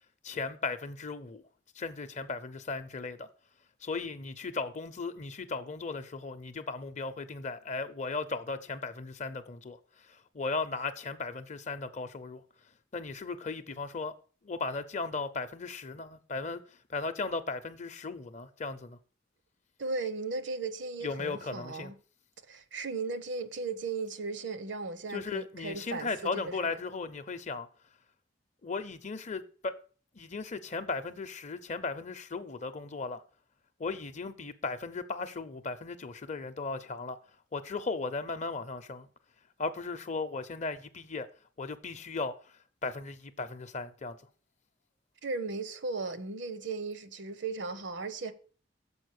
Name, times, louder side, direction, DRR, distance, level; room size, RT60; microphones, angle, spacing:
voice 1, 0.2-1.4 1.7-3.3 3.8-12.4 12.9-14.2 14.4-19.0 21.0-21.9 25.1-27.7 28.6-29.7 30.1-33.2 33.8-37.2 37.5-39.1 39.6-41.3 41.6-44.2, left 4 dB, 40° left, 0.6 m, -36 dB
voice 2, 19.8-21.9 22.5-26.8 45.2-48.3, right 3 dB, 70° right, 0.8 m, -36 dB
7.1 x 5.0 x 6.5 m
head